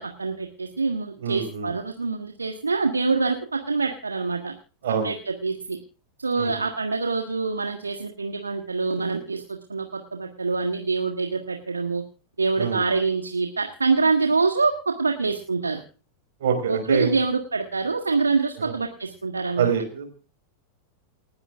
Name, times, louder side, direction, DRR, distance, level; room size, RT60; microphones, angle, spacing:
voice 1, 0.0-4.5 5.0-5.8 6.2-12.0 12.4-15.8 16.7-19.7, right 4 dB, 80° right, 5 dB, 1.5 m, -25 dB
voice 2, 1.2-1.7 4.8-5.1 6.4-6.5 12.6-12.8 16.4-17.1 18.6-18.7 19.6-20.1, right 7 dB, 60° right, 7 dB, 4.8 m, -25 dB
29.0 x 9.8 x 2.5 m, 0.37 s
figure-of-eight pair, 90°, 0 cm